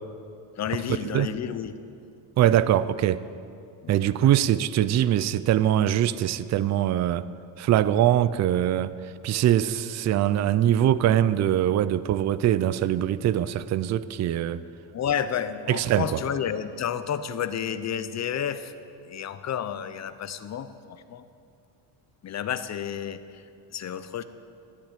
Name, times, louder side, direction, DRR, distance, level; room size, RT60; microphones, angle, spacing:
voice 1, 0.6-1.7 2.4-2.7 3.8-4.0 14.9-18.7 19.0-21.2 22.2-24.2, left 8 dB, 35° left, 12 dB, 0.8 m, -31 dB
voice 2, 2.4-3.2 3.9-7.3 7.6-8.9 9.2-14.6 15.7-16.2, right 11 dB, 35° right, 16 dB, 0.5 m, -22 dB
13.5 x 9.9 x 8.8 m, 2.4 s
cardioid pair, 125°, 49 cm